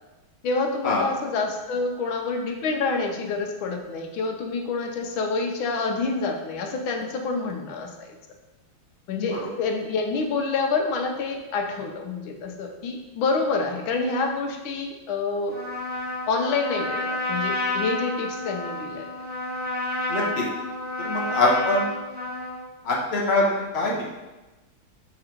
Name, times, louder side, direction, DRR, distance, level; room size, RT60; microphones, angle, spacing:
voice 1, 0.4-8.1 9.1-15.6 16.3-19.1, left 4 dB, 75° left, 3 dB, 1.5 m, -27 dB
voice 2, 9.2-9.5 20.1-20.4 21.0-21.9 22.8-24.1, left 2 dB, 45° left, -3 dB, 0.9 m, -24 dB
Trumpet, 15.5-22.7, left 1 dB, 10° right, 0.5 m, -30 dB
5.8 x 3.8 x 4.4 m, 1.1 s
omnidirectional pair, 2.3 m